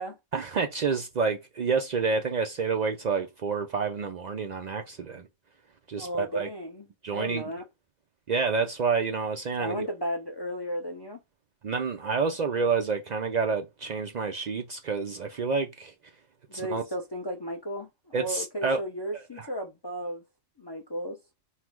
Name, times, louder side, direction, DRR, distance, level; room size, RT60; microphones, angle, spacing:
voice 1, 0.3-5.3 5.9-6.5 7.0-7.5 8.3-9.9 11.6-15.9 16.5-16.8 18.1-18.8 19.1-19.5, right 5 dB, 70° right, 0.4 m, -29 dB
voice 2, 6.0-7.6 9.6-11.2 16.5-20.2 20.6-21.2, equal, 35° left, 0.4 m, -34 dB
5.6 x 2.1 x 4.5 m
omnidirectional pair, 1.4 m